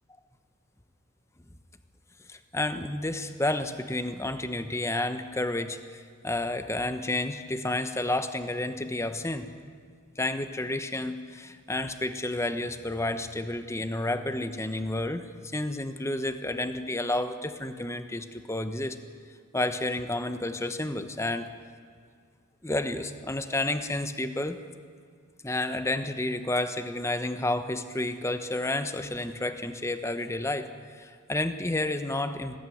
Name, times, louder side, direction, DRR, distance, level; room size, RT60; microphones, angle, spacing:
voice 1, 2.3-9.5 10.2-19.0 19.5-21.5 22.6-24.6 25.4-30.7 31.0-32.6, left 1 dB, 15° left, 9 dB, 1.0 m, -30 dB
20.5 x 16.5 x 9.4 m, 2.1 s
head